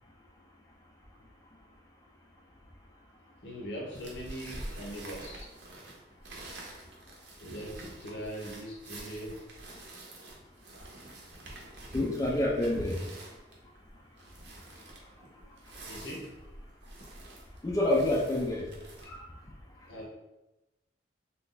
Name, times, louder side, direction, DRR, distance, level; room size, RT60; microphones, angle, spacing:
voice 1, 3.4-5.5 7.4-10.1 11.4-11.5 15.9-16.3 19.9-20.1, equal, 70° left, -1 dB, 0.8 m, -41 dB
sound 1, 3.9-19.0, right 1 dB, 75° right, 0.7 m, -47 dB
voice 2, 11.9-13.0 17.6-18.7 19.1-19.2, left 1 dB, 20° left, -3 dB, 0.3 m, -27 dB
2.6 x 2.3 x 3.7 m, 0.99 s
head